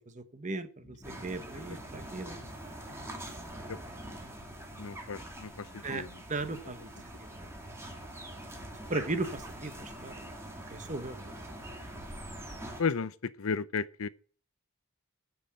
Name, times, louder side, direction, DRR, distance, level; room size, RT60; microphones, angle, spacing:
voice 1, 0.0-2.4 5.8-6.0 6.3-6.9 7.2-7.5 8.9-10.3 10.7-11.4, right 2 dB, 35° right, 1.1 m, -37 dB
sound 1, 0.8-1.2 1.7-1.8 2.4-2.6 2.9-3.7 4.4-4.5 5.0-6.2, left 1 dB, 30° left, 1.5 m, -55 dB
sound 2, 1.0-12.8, right 1 dB, 10° right, 2.2 m, -44 dB
voice 2, 4.8-6.1 12.8-14.1, left 5 dB, 70° left, 0.6 m, -34 dB
9.7 x 7.1 x 8.6 m
head